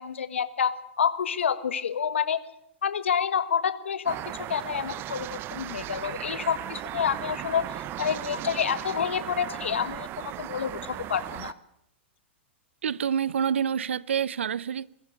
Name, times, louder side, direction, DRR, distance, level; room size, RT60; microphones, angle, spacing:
voice 1, 0.0-2.4 2.8-7.7 8.0-11.5, left 7 dB, 80° left, 1.6 m, -28 dB
sound 1, 4.1-11.5, right 14 dB, 35° right, 1.0 m, -37 dB
voice 2, 12.8-14.9, right 8 dB, 80° right, 0.8 m, -27 dB
23.5 x 14.5 x 10.0 m
hypercardioid pair, 110°, 6 cm